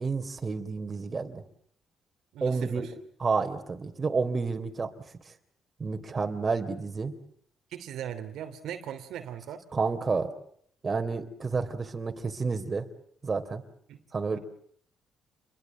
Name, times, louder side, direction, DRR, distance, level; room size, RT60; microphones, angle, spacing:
voice 1, 0.0-1.4 2.4-2.9 3.2-4.9 5.8-7.1 9.7-10.3 10.8-12.8 13.2-13.6 14.1-14.4, right 4 dB, 35° right, 3.5 m, -30 dB
voice 2, 2.3-2.9 7.7-9.6 13.9-14.0 14.3-14.4, right 10 dB, 80° right, 2.9 m, -39 dB
28.5 x 23.0 x 7.4 m
cardioid pair, 90°, 0 cm